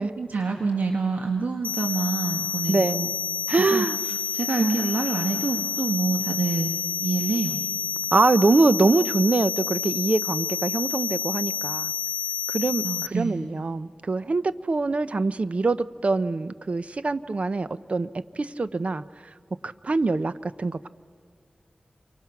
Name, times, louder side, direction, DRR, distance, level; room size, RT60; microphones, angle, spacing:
voice 1, 0.0-3.1 3.6-6.7 7.0-7.5 12.8-13.4, right 4 dB, 85° right, 3 dB, 1.8 m, -27 dB
sound 1, 1.6-13.1, left 7 dB, 65° left, 0.6 m, -29 dB
voice 2, 2.7-3.0 3.5-4.0 4.6-4.9 8.1-11.9 12.5-18.1 18.4-19.0 19.6-20.9, right 3 dB, 50° right, 14 dB, 0.7 m, -24 dB
29.5 x 24.5 x 5.9 m, 2.2 s
wide cardioid pair, 85°, 3 cm